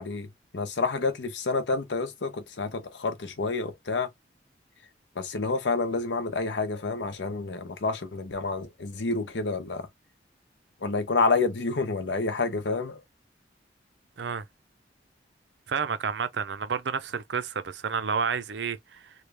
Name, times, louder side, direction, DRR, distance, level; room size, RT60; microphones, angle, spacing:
voice 1, 0.0-4.1 5.1-9.9 10.8-13.0, left 3 dB, 80° left, 0.8 m, -29 dB
voice 2, 15.7-19.1, right 6 dB, 75° right, 0.5 m, -30 dB
3.2 x 2.3 x 3.3 m
head